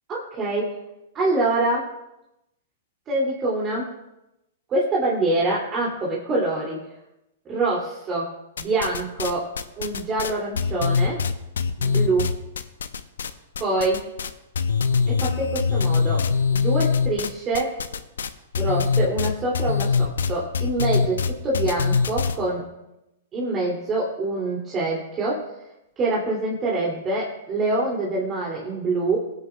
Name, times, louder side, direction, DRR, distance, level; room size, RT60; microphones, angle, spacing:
voice 1, 0.1-0.7 1.1-1.9 3.1-3.9 4.7-6.8 7.5-9.5 9.8-11.2 11.8-12.3 13.6-14.0 15.1-17.8 18.6-22.6 23.3-25.4 26.0-29.2, right 2 dB, 25° right, -4 dB, 2.6 m, -25 dB
sound 1, 8.6-9.3 9.6-13.3 13.5-14.3 14.5-22.4, left 5 dB, 75° left, 0.8 m, -23 dB
21.0 x 9.4 x 2.3 m, 0.91 s
figure-of-eight pair, 110°, 0 cm